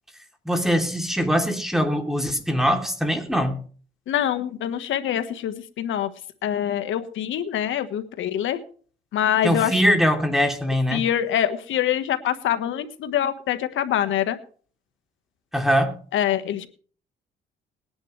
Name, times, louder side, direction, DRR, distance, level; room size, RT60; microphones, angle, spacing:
voice 1, 0.4-3.6 9.4-11.0 15.5-15.9, equal, ahead, 4 dB, 3.1 m, -22 dB
voice 2, 4.1-6.1 6.4-8.6 9.1-9.7 10.9-14.4 16.1-16.7, left 10 dB, 75° left, 9 dB, 1.4 m, -25 dB
20.5 x 10.5 x 3.3 m, 0.42 s
cardioid pair, 90°, 20 cm